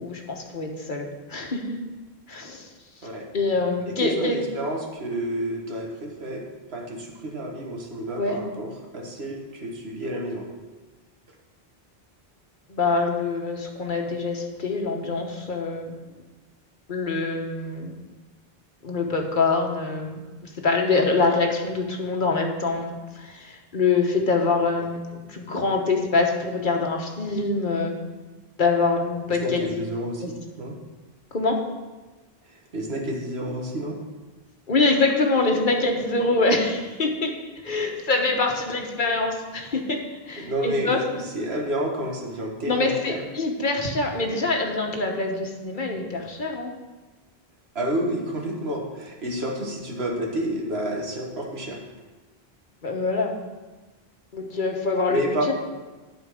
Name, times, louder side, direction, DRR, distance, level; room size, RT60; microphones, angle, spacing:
voice 1, 0.0-1.8 2.3-2.7 3.3-4.4 8.2-8.4 12.7-15.9 16.9-18.0 18.8-25.0 25.3-28.0 28.6-29.6 31.3-31.6 34.7-37.4 37.6-41.0 42.7-46.7 52.8-53.3 54.3-55.5, left 3 dB, 55° left, 2 dB, 1.2 m, -25 dB
voice 2, 4.0-6.5 6.7-10.5 29.3-30.2 30.6-30.8 32.7-34.0 40.4-43.2 47.8-51.8 55.1-55.5, right 1 dB, 80° right, 0 dB, 1.8 m, -29 dB
12.0 x 4.5 x 6.4 m, 1.2 s
omnidirectional pair, 1.0 m